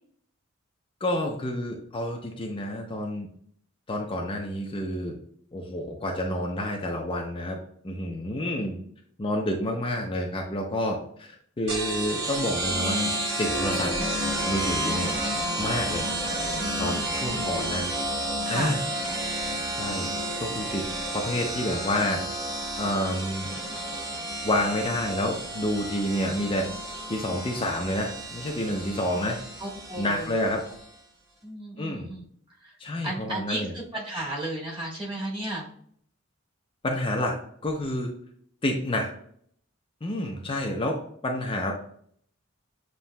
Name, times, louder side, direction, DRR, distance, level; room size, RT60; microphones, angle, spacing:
voice 1, 1.0-3.3 3.9-5.2 5.5-7.6 7.8-8.8 9.2-13.1 13.4-13.9 14.5-15.1 15.6-16.1 16.8-17.8 18.5-18.8 19.7-20.1 20.4-20.9 21.1-23.5 24.4-26.7 27.1-29.4 30.0-30.6 31.8-32.1 32.8-33.7 36.8-38.1 38.6-39.1 40.0-41.7, left 1 dB, 25° left, 0 dB, 0.5 m, -29 dB
sound 1, 11.7-30.8, right 1 dB, 50° right, 1.1 m, -31 dB
voice 2, 15.9-17.2 18.4-18.7 29.6-30.4 31.4-32.2 32.6-32.7 33.0-35.7, right 1 dB, 25° right, -3 dB, 1.3 m, -34 dB
7.1 x 3.0 x 2.2 m, 0.62 s
head